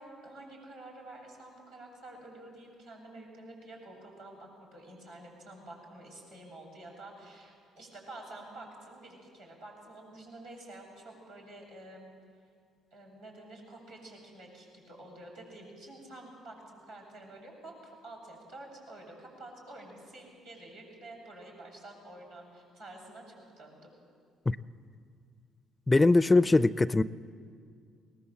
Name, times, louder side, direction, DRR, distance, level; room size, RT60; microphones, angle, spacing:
voice 1, 0.0-12.1 12.9-23.9, right 2 dB, 85° right, -6 dB, 7.0 m, -49 dB
voice 2, 25.9-27.0, left 2 dB, 20° left, 17 dB, 0.5 m, -22 dB
21.5 x 19.0 x 7.5 m, 2.2 s
hypercardioid pair, 50°, 0 cm